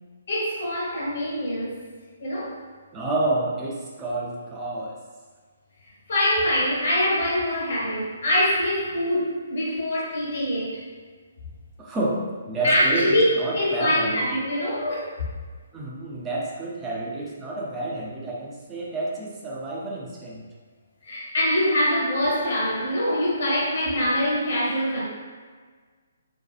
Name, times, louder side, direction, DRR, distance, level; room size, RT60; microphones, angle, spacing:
voice 1, 0.3-1.8 2.2-2.6 6.1-10.8 12.6-13.2 13.5-15.1 21.0-25.0, left 1 dB, 50° left, -6 dB, 0.9 m, -24 dB
voice 2, 2.9-5.0 11.8-14.3 15.7-20.4, right 2 dB, 15° right, -3 dB, 0.4 m, -29 dB
2.6 x 2.3 x 2.3 m, 1.5 s
figure-of-eight pair, 130°, 0 cm